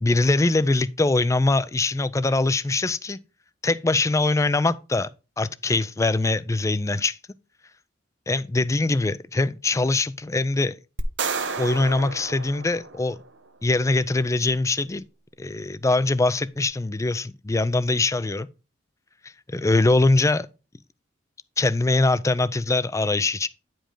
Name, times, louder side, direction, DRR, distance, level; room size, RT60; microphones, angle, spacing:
voice 1, 0.0-3.2 3.6-5.1 5.4-7.2 8.3-10.8 11.6-13.2 13.6-15.0 15.4-18.5 19.5-20.5 21.6-23.5, left 2 dB, 15° left, 0.4 m, -22 dB
sound 1, 11.0-13.4, right 4 dB, 70° right, 0.9 m, -31 dB
10.0 x 5.1 x 3.8 m
head